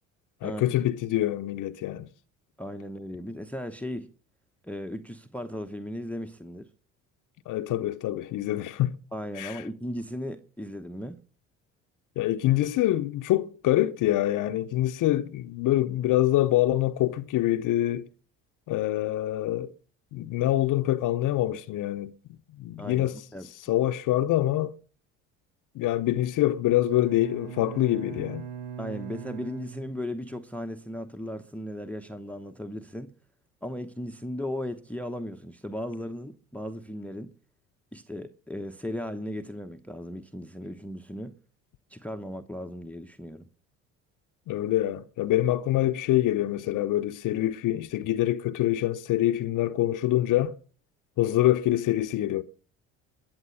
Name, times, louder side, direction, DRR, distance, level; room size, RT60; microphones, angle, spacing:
voice 1, 0.4-2.1 7.5-9.0 9.4-9.6 12.2-18.1 18.7-19.7 20.1-22.1 22.6-23.2 23.7-24.7 25.7-28.5 44.5-50.6 51.2-52.4, left 14 dB, 55° left, 0.8 m, -25 dB
voice 2, 2.6-4.1 4.6-6.7 9.1-11.2 22.8-23.5 28.8-33.1 33.6-37.3 37.9-41.4 41.9-43.5, left 1 dB, 5° left, 0.9 m, -36 dB
Bowed string instrument, 26.9-30.5, right 8 dB, 85° right, 1.3 m, -41 dB
22.0 x 7.6 x 5.6 m
hypercardioid pair, 65°, 37 cm